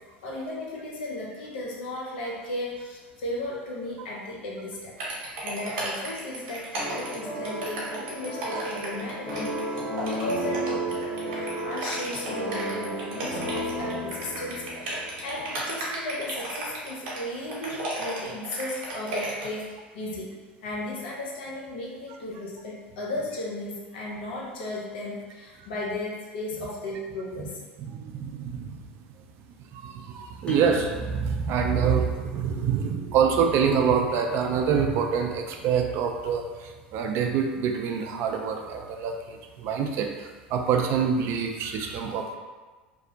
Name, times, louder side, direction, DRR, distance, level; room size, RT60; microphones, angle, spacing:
voice 1, 0.2-4.9 5.4-20.3 20.6-27.6, left 1 dB, 70° left, -3 dB, 0.6 m, -35 dB
sound 1, 5.0-19.6, right 2 dB, 65° right, 0.8 m, -34 dB
sound 2, 6.8-15.8, right 1 dB, 45° left, 1.0 m, -33 dB
voice 2, 27.8-28.8 29.7-42.3, right 6 dB, 50° right, 3 dB, 0.3 m, -26 dB
sound 3, 30.4-35.8, left 1 dB, 20° left, 0.6 m, -48 dB
2.5 x 2.0 x 2.7 m, 1.3 s
hypercardioid pair, 75°, 6 cm